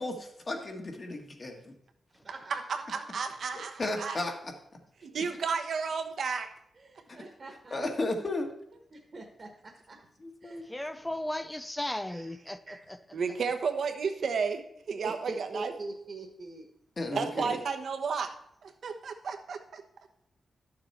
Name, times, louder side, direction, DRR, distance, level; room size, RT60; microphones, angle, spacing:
voice 1, 0.0-1.7 3.5-4.5 7.7-8.5 10.2-10.6 17.0-17.6, left 2 dB, 35° left, 2 dB, 1.8 m, -34 dB
voice 2, 2.2-3.3 6.7-7.8 8.9-10.1 10.4-10.7 12.1-12.3 12.7-12.8 15.0-16.7, right 2 dB, 40° right, 3 dB, 1.4 m, -44 dB
voice 3, 2.9-4.2 5.0-6.5 13.1-15.7 17.1-18.3 18.6-19.8, right 5 dB, 65° right, 6 dB, 1.0 m, -32 dB
voice 4, 10.6-13.4, left 1 dB, 10° left, 12 dB, 0.6 m, -36 dB
11.5 x 6.9 x 4.3 m, 0.73 s
wide cardioid pair, 115°, 0 cm